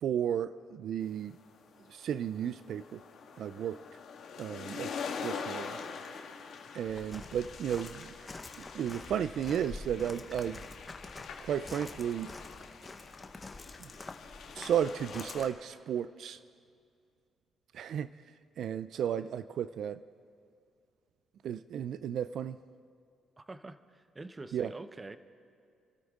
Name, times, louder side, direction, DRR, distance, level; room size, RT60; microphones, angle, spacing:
voice 1, 0.0-1.3 1.9-3.0 3.4-3.8 4.4-5.8 6.7-8.1 8.6-10.6 11.4-12.3 13.8-13.9 14.5-16.4 17.7-18.1 18.6-20.0 21.4-22.6 24.5-24.7, right 9 dB, 70° right, 14 dB, 0.3 m, -34 dB
sound 1, 1.2-15.5, left 6 dB, 75° left, 1.8 m, -44 dB
Walk footsteps, 6.9-15.4, left 3 dB, 25° left, 1.1 m, -47 dB
voice 2, 23.4-25.2, right 2 dB, 20° right, 11 dB, 0.8 m, -45 dB
28.5 x 12.5 x 3.7 m, 2.3 s
cardioid pair, 90°, 0 cm